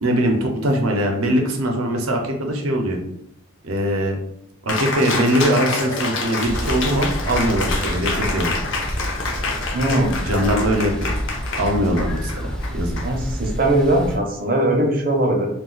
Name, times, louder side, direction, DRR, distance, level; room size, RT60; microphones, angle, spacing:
voice 1, 0.0-3.0 3.6-4.2 4.7-8.5 10.2-11.1 11.6-13.0, equal, 85° right, 2 dB, 0.7 m, -21 dB
Cheering, 4.7-13.6, left 3 dB, 60° left, 0.5 m, -28 dB
sound 1, 6.4-14.2, equal, 5° left, 0.4 m, -28 dB
voice 2, 9.7-10.2 13.0-15.5, right 1 dB, 40° right, 1 dB, 0.6 m, -20 dB
2.4 x 2.3 x 3.7 m, 0.75 s
head